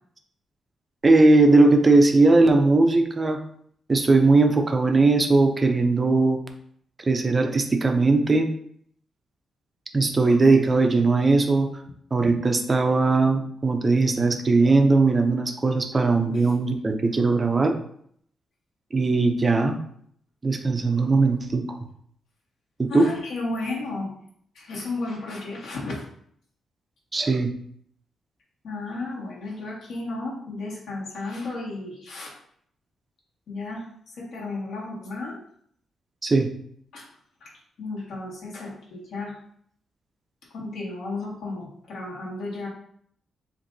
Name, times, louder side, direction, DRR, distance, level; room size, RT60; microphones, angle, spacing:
voice 1, 1.0-3.4 3.9-6.4 7.0-8.5 9.9-11.7 12.1-17.8 18.9-19.7 20.4-21.8 22.8-23.1 27.1-27.5 36.2-36.5, right 3 dB, 20° right, 4 dB, 0.5 m, -19 dB
voice 2, 22.9-24.1 24.5-26.0 28.6-32.3 33.5-35.4 36.9-37.1 37.4-37.5 37.8-39.4 40.5-42.7, left 2 dB, 70° left, -4 dB, 1.7 m, -33 dB
7.4 x 2.6 x 2.7 m, 0.65 s
wide cardioid pair, 175°, 0 cm